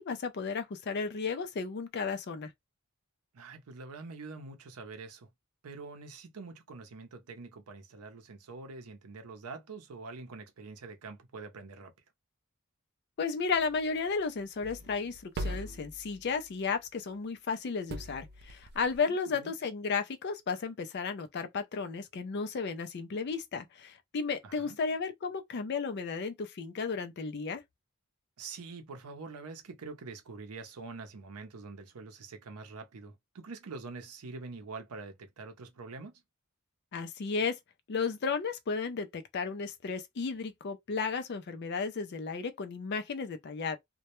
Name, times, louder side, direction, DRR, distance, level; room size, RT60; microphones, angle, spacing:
voice 1, 0.0-2.5 13.2-27.6 36.9-37.5 37.9-43.8, left 5 dB, 50° left, 0.4 m, -34 dB
voice 2, 3.3-5.3 5.6-11.9 19.1-19.5 24.4-24.8 28.4-36.1, right 4 dB, 90° right, 0.6 m, -45 dB
sound 1, 13.5-16.7 17.9-19.0, right 1 dB, 45° right, 0.3 m, -42 dB
2.2 x 2.0 x 2.9 m
head